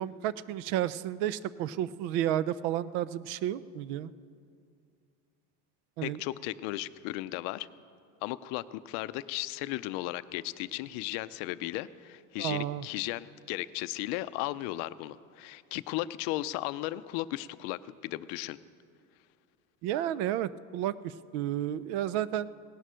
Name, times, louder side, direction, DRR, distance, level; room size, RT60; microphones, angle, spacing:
voice 1, 0.0-4.1 6.0-6.2 12.4-12.8 19.8-22.5, right 12 dB, 65° right, 18 dB, 0.5 m, -32 dB
voice 2, 6.0-7.7 8.2-18.6, left 16 dB, 65° left, 15 dB, 0.5 m, -35 dB
17.5 x 11.0 x 6.2 m, 2.3 s
cardioid pair, 175°, 34 cm